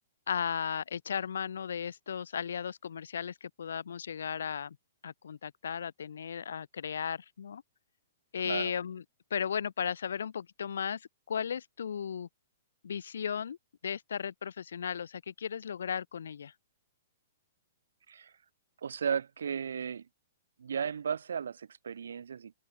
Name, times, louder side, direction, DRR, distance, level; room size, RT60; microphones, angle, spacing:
voice 1, 0.3-4.8 5.0-7.6 8.3-9.0 9.3-12.3 12.8-13.6 13.8-16.5, left 7 dB, 80° left, 0.4 m, -35 dB
voice 2, 18.8-20.1 20.6-22.5, right 7 dB, 80° right, 0.5 m, -35 dB
hypercardioid pair, 135°, 0 cm